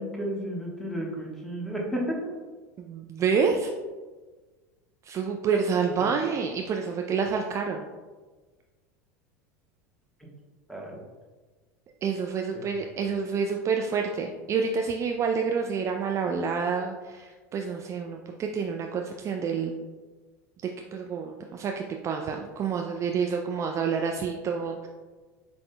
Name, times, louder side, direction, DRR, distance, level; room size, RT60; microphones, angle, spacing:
voice 1, 0.0-2.3 6.0-6.1 10.2-10.3 10.7-11.0 12.5-12.7, equal, 5° left, -2 dB, 1.2 m, -33 dB
voice 2, 2.8-3.7 5.1-7.8 12.0-19.7 20.9-24.9, right 5 dB, 35° right, 3 dB, 0.3 m, -28 dB
7.2 x 2.7 x 2.2 m, 1.3 s
hypercardioid pair, 90°, 9 cm